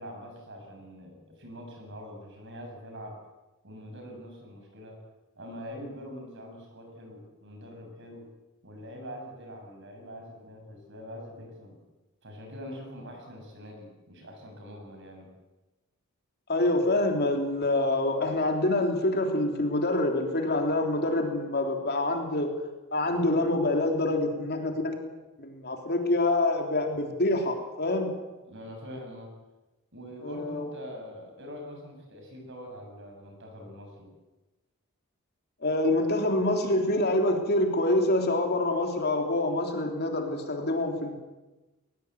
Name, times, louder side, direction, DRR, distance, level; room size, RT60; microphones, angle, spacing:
voice 1, 0.0-3.2 3.6-5.0 5.4-8.3 8.6-11.8 12.2-15.3 28.5-29.4 29.9-34.1, equal, 55° right, 3 dB, 7.3 m, -44 dB
voice 2, 16.5-22.5 22.9-25.0 25.4-28.1 30.2-30.7 35.6-41.2, left 2 dB, 45° left, 3 dB, 3.4 m, -26 dB
20.5 x 20.0 x 8.2 m, 1.1 s
head